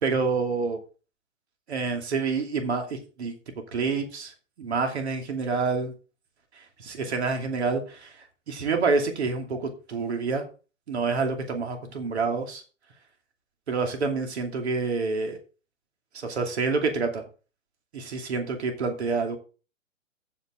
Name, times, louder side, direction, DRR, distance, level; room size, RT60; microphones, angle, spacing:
voice 1, 0.0-0.8 1.7-3.3 3.7-4.3 4.6-5.9 6.8-8.1 8.5-10.4 10.9-12.6 13.7-15.4 16.1-17.2 17.9-19.4, right 4 dB, 55° right, 4 dB, 2.8 m, -27 dB
14.5 x 5.3 x 3.8 m, 0.34 s
figure-of-eight pair, 125°, 39 cm